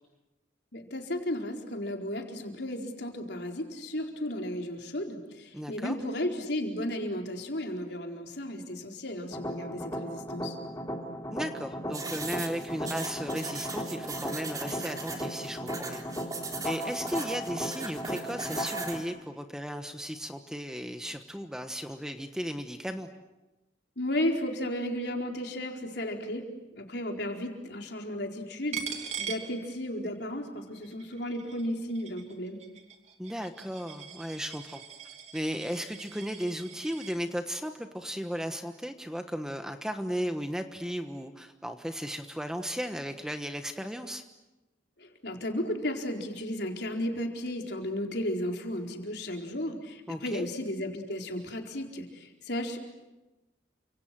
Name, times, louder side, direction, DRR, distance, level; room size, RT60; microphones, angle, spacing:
voice 1, 0.7-10.6 24.0-26.5 26.7-32.6 45.0-52.8, left 1 dB, 65° left, 2 dB, 4.3 m, -34 dB
voice 2, 5.5-6.0 11.3-16.0 16.6-23.1 33.2-34.8 35.3-44.2 50.1-50.5, equal, 5° right, 7 dB, 1.2 m, -35 dB
sound 1, 9.3-19.0, equal, 20° left, 2.9 m, -36 dB
sound 2, 11.9-19.0, right 3 dB, 20° right, 3.5 m, -39 dB
Coin (dropping), 28.7-30.2 30.6-37.2, right 7 dB, 35° right, 2.7 m, -42 dB
30.0 x 26.5 x 7.6 m, 1.1 s
head